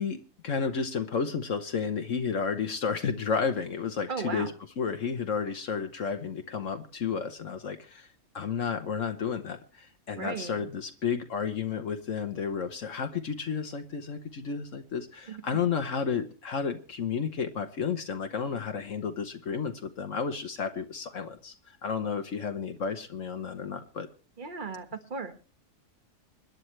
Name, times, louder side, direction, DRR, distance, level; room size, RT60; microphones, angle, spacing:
voice 1, 0.0-4.5 4.8-8.1 8.3-24.1, left 6 dB, 65° left, 7 dB, 1.3 m, -32 dB
voice 2, 4.1-4.5 10.2-10.7 15.3-15.4 24.4-25.3, right 5 dB, 35° right, 8 dB, 1.5 m, -36 dB
25.5 x 10.5 x 3.2 m, 0.37 s
omnidirectional pair, 1.4 m